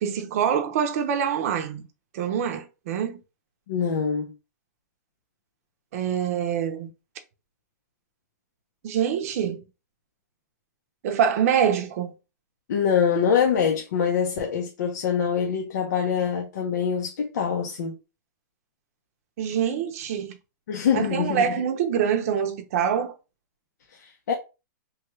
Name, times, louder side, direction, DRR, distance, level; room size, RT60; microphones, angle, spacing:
voice 1, 0.0-1.8 2.1-3.2 5.9-6.9 8.8-9.6 11.0-12.1 19.4-20.4 20.9-23.1, right 8 dB, 50° right, 0.6 m, -25 dB
voice 2, 3.7-4.3 12.7-17.9 20.7-21.6 24.0-24.3, left 7 dB, 70° left, 0.7 m, -24 dB
3.2 x 2.3 x 3.1 m
hypercardioid pair, 150°, 10 cm